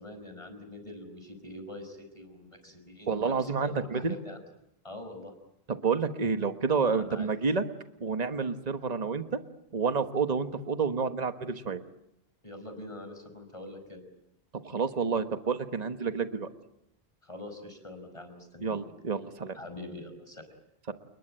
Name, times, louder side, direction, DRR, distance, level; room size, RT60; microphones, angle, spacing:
voice 1, 0.0-4.4 4.8-5.3 6.9-7.3 12.4-14.0 17.2-18.8 19.5-20.6, left 1 dB, 30° left, 6 dB, 5.6 m, -44 dB
voice 2, 3.1-4.2 5.7-7.6 8.0-9.4 9.7-11.8 14.6-16.5 18.6-19.6 20.9-21.0, right 5 dB, 40° right, 9 dB, 1.4 m, -29 dB
29.5 x 21.0 x 9.0 m, 0.81 s
omnidirectional pair, 1.1 m